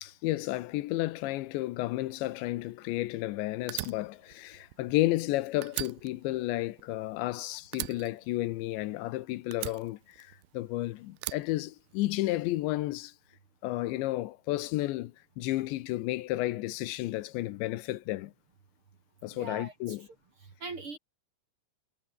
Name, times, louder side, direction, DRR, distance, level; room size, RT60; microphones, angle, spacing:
voice 1, 0.0-13.1 13.6-18.3 19.2-20.1, left 17 dB, 85° left, 3.2 m, -32 dB
Fire, 3.7-5.3 5.6-7.4 7.7-9.1 9.5-10.7 11.2-12.3, right 22 dB, 80° right, 2.4 m, -40 dB
voice 2, 19.3-20.0 20.6-21.0, right 3 dB, 35° right, 2.9 m, -41 dB
omnidirectional pair, 5.1 m